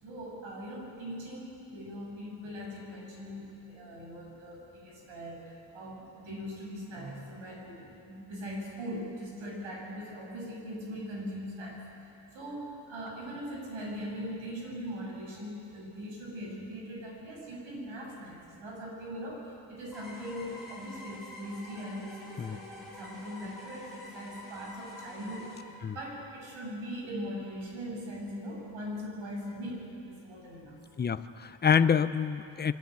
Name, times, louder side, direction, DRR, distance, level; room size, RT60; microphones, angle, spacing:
voice 1, 0.0-11.8 12.3-25.5 25.9-30.8, equal, 80° right, -2 dB, 6.7 m, -40 dB
sound 1, 19.9-25.6, left 1 dB, ahead, 5.7 m, -47 dB
voice 2, 31.0-32.7, left 7 dB, 20° left, 13 dB, 0.5 m, -26 dB
25.5 x 11.5 x 9.2 m, 2.7 s
cardioid pair, 140°, 47 cm